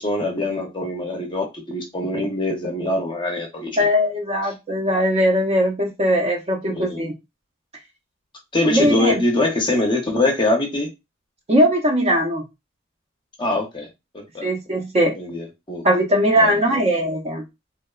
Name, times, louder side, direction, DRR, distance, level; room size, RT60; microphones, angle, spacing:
voice 1, 0.0-3.7 6.6-7.0 8.5-10.9 13.4-13.9 14.1-14.5 15.2-15.8 16.4-16.8, left 2 dB, 25° left, 0.5 m, -23 dB
voice 2, 3.8-7.1 8.7-9.2 11.5-12.4 14.4-15.2 15.8-17.4, equal, 30° right, 0.4 m, -19 dB
2.8 x 2.0 x 2.2 m
head